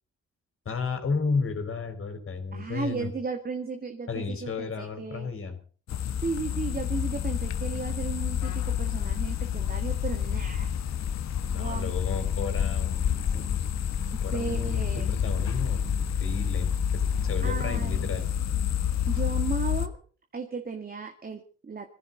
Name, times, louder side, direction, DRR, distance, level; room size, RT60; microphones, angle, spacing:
voice 1, 0.6-3.1 4.1-5.6 11.5-13.0 13.3-13.4 14.2-18.3, left 4 dB, 45° left, 6 dB, 4.4 m, -33 dB
voice 2, 2.5-5.3 6.2-10.8 11.5-11.9 14.1-15.2 17.4-18.1 19.1-20.0 20.3-21.9, right 4 dB, 30° right, 4 dB, 2.0 m, -35 dB
sound 1, 5.9-19.9, left 8 dB, 65° left, 1.6 m, -28 dB
22.0 x 14.5 x 4.1 m, 0.40 s
cardioid pair, 90°, 30 cm